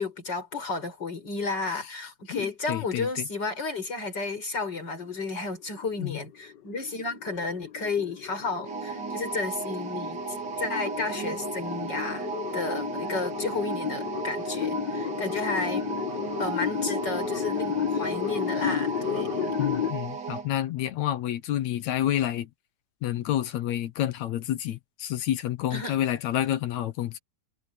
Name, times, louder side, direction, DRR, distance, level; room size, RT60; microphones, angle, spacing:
voice 1, 0.0-10.2 10.6-15.8 16.4-19.5 25.7-26.0, left 3 dB, 30° left, 6.2 m, -32 dB
voice 2, 2.3-3.1 6.0-6.2 19.6-22.5 23.0-27.2, left 12 dB, 65° left, 2.0 m, -29 dB
sound 1, 5.6-19.9, left 9 dB, 85° left, 0.9 m, -33 dB
sound 2, 8.6-20.5, right 6 dB, 35° right, 2.3 m, -35 dB
omnidirectional pair, 3.8 m